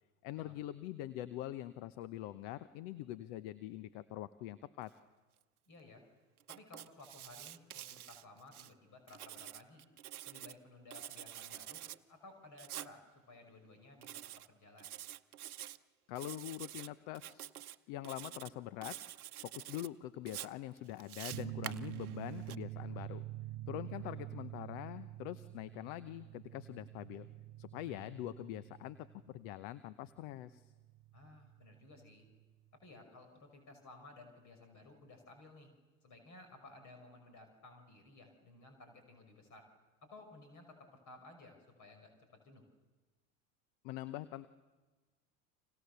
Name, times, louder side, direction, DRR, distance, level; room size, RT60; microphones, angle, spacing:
voice 1, 0.2-4.9 16.1-19.0 19.4-23.3 23.7-27.3 27.6-30.7 43.8-44.5, left 14 dB, 60° left, 14 dB, 1.0 m, -44 dB
voice 2, 5.7-6.0 6.5-9.9 10.2-11.8 12.1-14.2 14.5-14.9 23.9-24.0 31.1-32.3 32.8-35.7 36.0-39.6 40.0-42.6, left 2 dB, 45° left, 6 dB, 6.0 m, -57 dB
Writing, 6.4-8.7 9.1-10.6 10.9-12.0 12.6-12.9 14.0-14.5 14.8-15.8 16.1-16.9 17.1-17.7 18.0-18.5 18.8-19.9 20.3-22.5, right 13 dB, 85° right, 0.8 m, -48 dB
sound 1, 21.3-32.5, right 16 dB, 55° right, 0.9 m, -47 dB
29.5 x 26.0 x 6.9 m, 1.3 s
hypercardioid pair, 80°, 43 cm